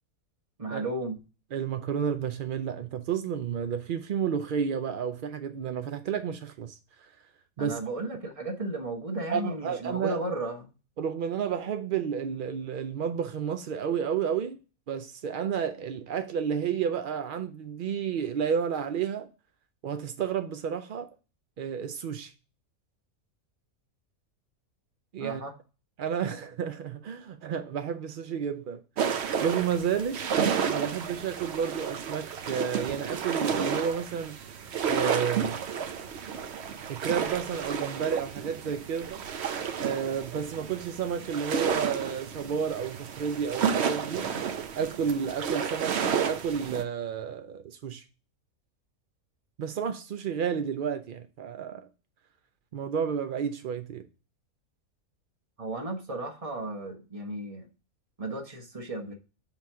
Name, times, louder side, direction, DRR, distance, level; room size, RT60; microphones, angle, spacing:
voice 1, 0.6-1.2 7.6-10.7 25.2-25.5 55.6-57.7 58.2-59.1, right 2 dB, 25° right, 1.1 m, -34 dB
voice 2, 1.5-7.1 7.6-7.8 9.3-10.2 11.0-14.6 14.9-19.3 19.8-21.1 21.6-22.3 25.1-25.4 26.0-28.8 29.4-30.2 30.7-34.4 34.8-35.6 36.9-39.2 39.8-44.3 44.8-48.0 49.6-51.9 52.7-54.0, right 7 dB, 75° right, 0.4 m, -31 dB
sound 1, 29.0-46.8, right 7 dB, 55° right, 0.8 m, -31 dB
7.0 x 3.1 x 5.6 m
omnidirectional pair, 1.5 m